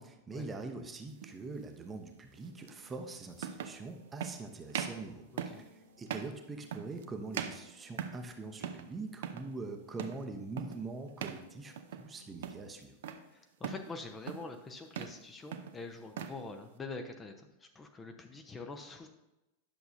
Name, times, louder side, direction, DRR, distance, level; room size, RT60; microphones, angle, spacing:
voice 1, 0.0-5.2 5.7-13.0, right 3 dB, 15° right, 5 dB, 0.8 m, -43 dB
sound 1, 1.2-1.4 2.7-2.8 3.4-3.8 4.2-4.4 4.7-5.0 5.4-5.7 6.1-6.4 6.7-7.0 7.3-8.3 8.6-8.9 9.1-9.5 10.0-10.2 10.6-10.8 11.2-11.4 11.8-12.1 12.4-13.2 13.6-13.9 14.3-14.6 14.9-15.2 15.5-16.4, right 8 dB, 55° right, 0.6 m, -40 dB
sound 2, 2.3-12.8, equal, 80° right, 1.4 m, -63 dB
voice 2, 13.3-19.1, left 3 dB, 15° left, 5 dB, 0.7 m, -45 dB
10.5 x 6.8 x 2.6 m, 0.95 s
figure-of-eight pair, 90°, 0 cm